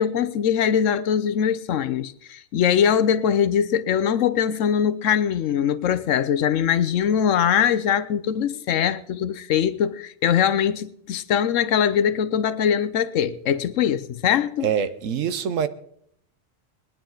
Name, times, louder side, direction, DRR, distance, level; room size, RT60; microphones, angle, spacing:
voice 1, 0.0-14.7, left 8 dB, 70° left, 1.0 m, -22 dB
voice 2, 14.6-15.7, right 8 dB, 70° right, 1.2 m, -24 dB
21.0 x 10.5 x 3.9 m
omnidirectional pair, 1.4 m